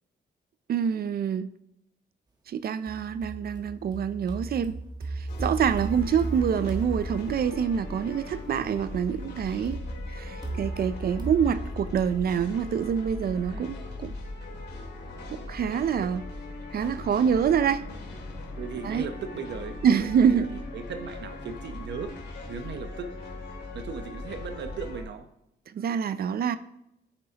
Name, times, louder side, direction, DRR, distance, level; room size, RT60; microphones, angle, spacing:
voice 1, 0.7-1.5 2.5-4.7 5.1-9.8 10.1-14.1 15.5-16.2 16.7-17.9 18.8-19.1 19.8-20.5 25.7-26.6, right 7 dB, 55° right, 13 dB, 0.5 m, -26 dB
sound 1, 2.9-7.8 9.6-12.7, right 2 dB, 20° right, 1.3 m, -36 dB
sound 2, 5.3-25.0, left 2 dB, 70° left, 2.6 m, -39 dB
voice 2, 18.6-22.1 22.5-23.1 23.7-25.3, right 5 dB, 75° right, 8 dB, 1.0 m, -37 dB
10.5 x 8.7 x 2.9 m, 0.81 s
cardioid pair, 105°, 18 cm